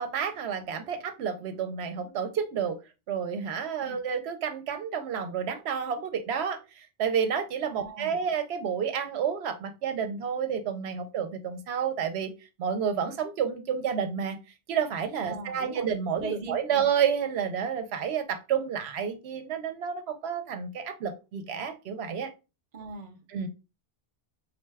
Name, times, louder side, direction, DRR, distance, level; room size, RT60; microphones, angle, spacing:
voice 1, 0.0-2.8 3.1-12.3 12.6-14.4 14.7-22.3 23.3-23.5, right 7 dB, 75° right, 8 dB, 0.8 m, -30 dB
voice 2, 7.8-8.2 15.2-15.9 16.2-16.8 22.7-23.2, right 3 dB, 45° right, 7 dB, 0.6 m, -39 dB
4.0 x 2.2 x 3.3 m, 0.28 s
omnidirectional pair, 1.1 m